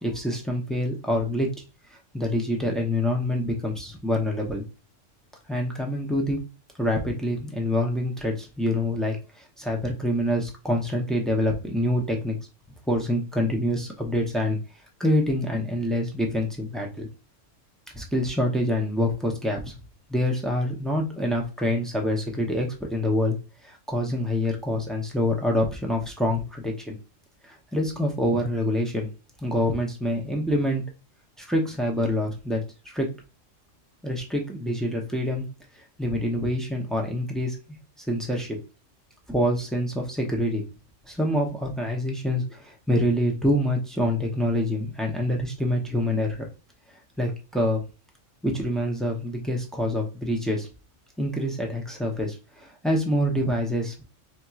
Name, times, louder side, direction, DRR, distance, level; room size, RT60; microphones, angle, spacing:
voice 1, 0.0-1.5 2.1-4.6 5.5-6.4 6.8-12.4 12.9-14.6 15.0-17.1 17.9-19.8 20.1-23.4 23.6-27.0 27.5-29.1 29.4-30.8 31.4-33.1 34.0-35.5 36.0-37.6 38.1-38.6 39.3-40.6 41.1-46.5 47.2-47.8 48.4-50.7 51.2-53.9, left 1 dB, ahead, 1 dB, 0.5 m, -26 dB
4.3 x 2.9 x 2.4 m, 0.30 s
omnidirectional pair, 1.3 m